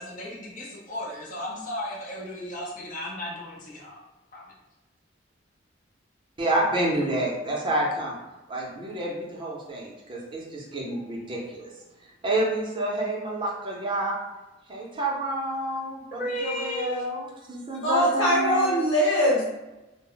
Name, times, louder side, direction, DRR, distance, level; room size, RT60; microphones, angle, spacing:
voice 1, 0.0-4.0 4.3-4.4 16.1-17.1, left 1 dB, 45° left, -4 dB, 0.6 m, -34 dB
voice 2, 6.4-8.2 8.5-11.7 12.2-14.2 14.7-18.7, right 1 dB, 25° right, -3 dB, 0.5 m, -29 dB
voice 3, 17.8-19.4, equal, 85° left, -6 dB, 1.1 m, -21 dB
2.0 x 2.0 x 3.7 m, 1.0 s
head